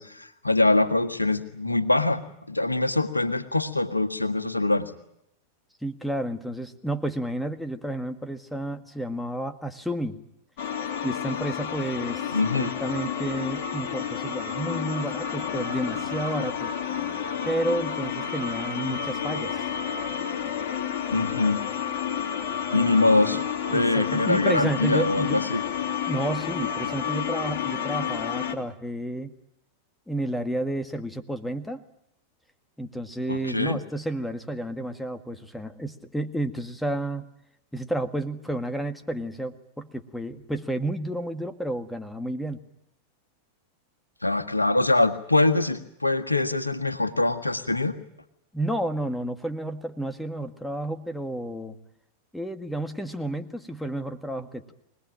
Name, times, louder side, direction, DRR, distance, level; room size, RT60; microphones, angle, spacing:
voice 1, 0.0-4.9 12.3-12.7 21.1-21.6 22.7-25.6 33.3-33.8 44.2-48.0, left 2 dB, 85° left, 9 dB, 1.6 m, -24 dB
voice 2, 5.8-10.2 11.0-16.7 17.5-19.6 22.7-23.2 23.7-25.5 26.1-29.3 30.1-31.8 32.8-37.3 37.7-42.6 48.5-51.8 52.3-54.7, right 1 dB, 5° left, 8 dB, 1.9 m, -31 dB
sound 1, 10.6-28.6, left 8 dB, 50° left, 3.1 m, -30 dB
24.5 x 20.0 x 8.9 m, 0.79 s
figure-of-eight pair, 90°, 0 cm